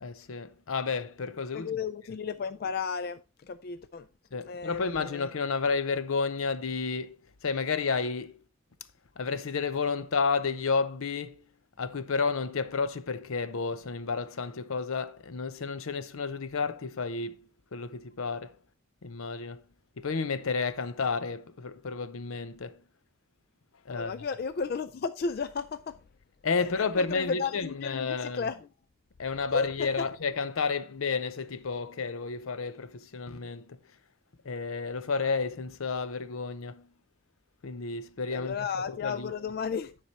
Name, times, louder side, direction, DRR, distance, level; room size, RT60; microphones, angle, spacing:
voice 1, 0.0-1.8 2.1-2.2 4.3-7.2 7.4-8.4 9.2-11.4 11.8-18.6 19.0-19.6 20.0-22.8 23.9-24.3 26.4-28.5 29.2-33.8 34.4-36.9 37.6-39.3, left 4 dB, 75° left, 0.6 m, -31 dB
voice 2, 1.5-3.2 3.5-4.0 4.5-4.8 23.9-25.9 26.8-28.5 29.5-29.7 38.3-39.9, left 5 dB, 45° left, 0.3 m, -33 dB
10.0 x 4.8 x 4.2 m
head